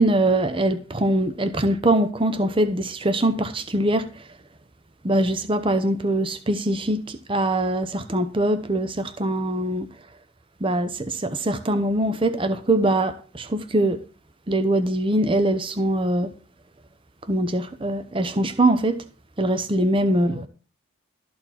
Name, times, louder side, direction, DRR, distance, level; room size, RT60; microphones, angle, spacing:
voice 1, 0.0-4.1 5.0-9.9 10.6-14.0 14.5-16.3 17.3-19.0 19.4-20.4, right 1 dB, 25° right, 0.7 m, -22 dB
13.0 x 4.4 x 7.4 m
head